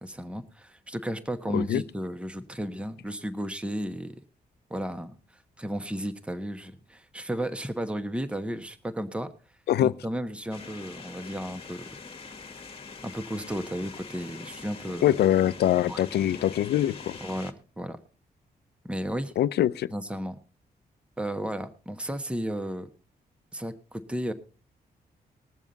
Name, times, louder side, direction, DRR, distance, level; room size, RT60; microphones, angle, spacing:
voice 1, 0.0-4.2 4.7-5.2 5.6-9.3 9.8-11.8 13.0-15.1 15.9-16.0 17.2-18.0 18.8-19.3 19.9-20.4 21.2-22.9 23.5-24.3, equal, 5° right, 1.1 m, -33 dB
sound 1, 10.5-17.5, left 4 dB, 35° left, 1.7 m, -44 dB
voice 2, 15.0-17.2 19.4-19.9, left 12 dB, 85° left, 0.5 m, -23 dB
20.5 x 7.2 x 4.0 m
cardioid pair, 100°, 17 cm